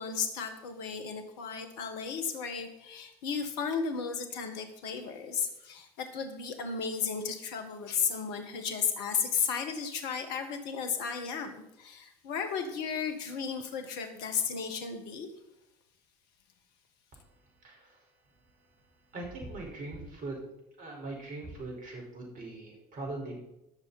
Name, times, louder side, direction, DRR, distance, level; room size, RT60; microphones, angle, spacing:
voice 1, 0.0-15.3, left 6 dB, 60° left, 7 dB, 1.9 m, -34 dB
voice 2, 17.6-18.1 19.1-20.4 20.8-23.4, right 2 dB, 45° right, 1 dB, 5.3 m, -41 dB
20.5 x 7.1 x 4.3 m, 0.88 s
figure-of-eight pair, 65°, 19 cm